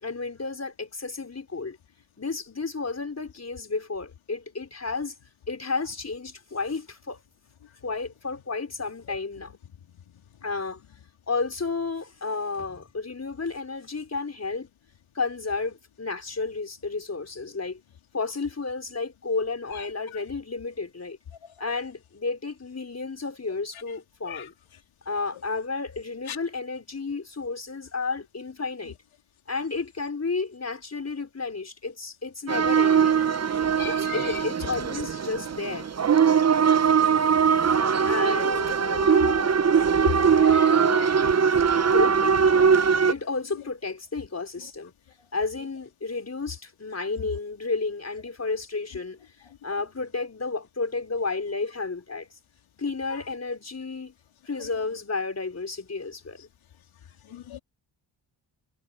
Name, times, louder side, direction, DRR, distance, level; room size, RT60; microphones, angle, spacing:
voice 1, 0.0-1.8 2.2-5.1 5.5-7.2 7.8-9.5 10.4-10.8 11.3-14.7 15.1-17.8 18.1-21.2 21.6-24.5 25.0-29.0 29.5-33.2 33.8-35.9 38.0-39.5 40.2-41.1 41.9-42.4 43.1-44.9 45.3-49.2 49.6-52.3 52.8-54.1 54.5-56.5, left 4 dB, 35° left, 4.9 m, -32 dB
sound 1, 32.5-43.1, right 6 dB, 35° right, 0.8 m, -21 dB
voice 2, 33.8-34.2 40.2-41.3 41.7-41.8 57.3-57.6, left 9 dB, 90° left, 3.3 m, -39 dB
cardioid pair, 65°, 47 cm